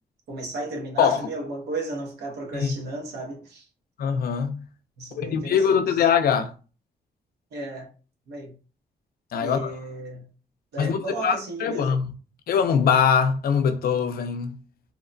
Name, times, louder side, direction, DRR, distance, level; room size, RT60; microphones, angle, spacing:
voice 1, 0.3-3.7 5.0-6.1 7.5-7.9 8.3-8.6 9.4-10.3 10.7-11.9, right 2 dB, 90° right, 0.9 m, -34 dB
voice 2, 4.0-4.6 5.2-6.5 9.3-9.7 10.8-11.3 11.6-12.1 12.5-14.6, left 7 dB, 65° left, 0.4 m, -22 dB
2.8 x 2.1 x 2.5 m
cardioid pair, 100°, 16 cm